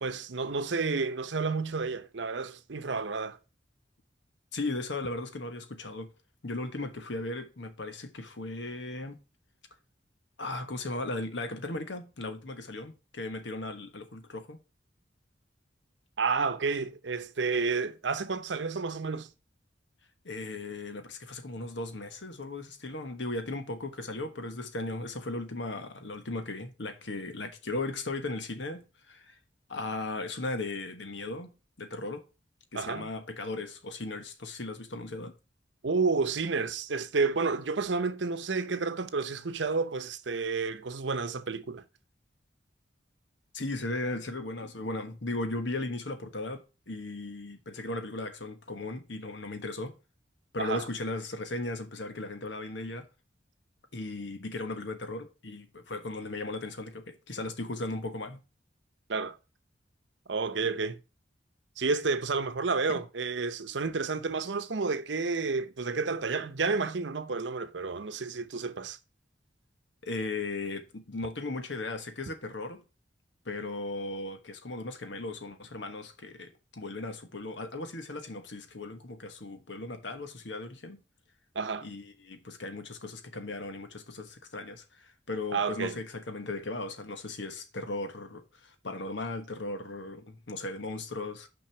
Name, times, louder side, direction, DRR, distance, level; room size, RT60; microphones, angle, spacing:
voice 1, 0.0-3.4 16.2-19.3 32.7-33.1 35.8-41.8 50.6-50.8 59.1-59.4 60.3-61.0 61.8-69.0 81.5-81.9 85.5-85.9, right 4 dB, 75° right, 0.8 m, -30 dB
voice 2, 4.5-6.1 6.4-9.2 10.4-14.6 20.2-29.4 29.7-31.5 31.8-32.2 32.7-35.3 43.5-49.9 50.5-53.1 53.9-58.4 70.0-72.8 73.4-81.0 81.8-91.5, left 2 dB, 75° left, 1.3 m, -37 dB
6.1 x 5.2 x 5.8 m
head